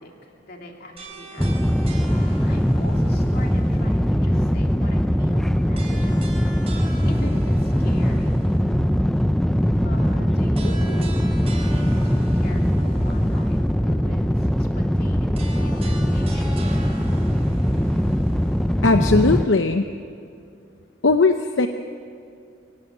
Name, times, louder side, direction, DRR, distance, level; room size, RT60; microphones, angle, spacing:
voice 1, 0.0-1.6 1.9-6.4 7.0-8.4 9.8-14.5 14.7-16.6, left 1 dB, 50° left, 1 dB, 2.8 m, -41 dB
sound 1, 1.0-4.1 5.7-8.7 10.5-13.7 15.3-18.8, right 2 dB, 30° right, 4.1 m, -41 dB
sound 2, 1.4-19.5, equal, ahead, 0.5 m, -21 dB
voice 2, 18.8-19.9 21.0-21.7, left 3 dB, 70° left, 7 dB, 0.7 m, -18 dB
23.0 x 16.5 x 9.0 m, 2.4 s
head